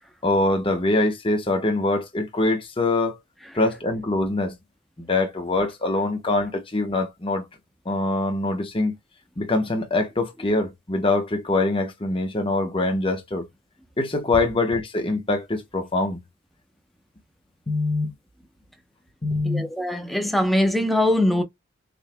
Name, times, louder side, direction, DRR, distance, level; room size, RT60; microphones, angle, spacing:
voice 1, 0.2-3.2 3.5-4.6 5.0-7.5 7.8-8.9 9.4-13.5 14.0-16.2 17.7-18.1 19.2-19.7, left 2 dB, 25° left, 1.2 m, -24 dB
voice 2, 19.4-21.4, left 1 dB, ahead, 0.9 m, -22 dB
6.5 x 3.3 x 2.3 m
head